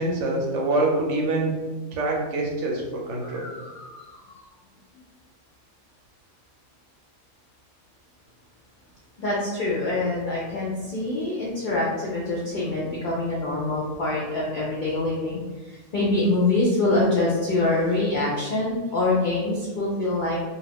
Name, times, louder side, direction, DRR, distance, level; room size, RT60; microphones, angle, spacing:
voice 1, 0.0-1.6 1.9-3.4, right 2 dB, 70° right, 0 dB, 0.8 m, -25 dB
voice 2, 3.2-4.4 9.2-20.4, left 2 dB, 80° left, -5 dB, 0.4 m, -25 dB
2.4 x 2.4 x 3.3 m, 1.2 s
omnidirectional pair, 1.5 m